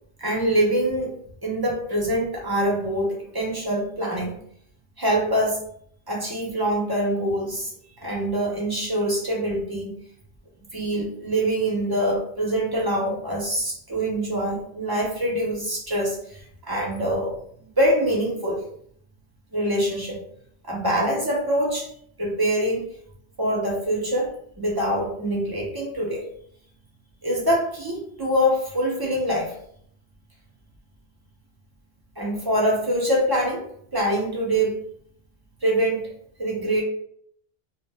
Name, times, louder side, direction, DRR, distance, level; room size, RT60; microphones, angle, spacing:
voice 1, 0.2-1.1 1.4-4.4 5.0-5.6 6.1-7.7 8.0-9.9 10.7-17.3 17.8-18.6 19.5-20.2 20.6-21.9 22.2-22.8 23.4-26.2 27.2-29.5 32.2-33.6 33.9-34.8 35.6-36.1 36.4-36.8, equal, 30° right, -3 dB, 0.5 m, -24 dB
2.0 x 2.0 x 3.3 m, 0.66 s
omnidirectional pair, 1.1 m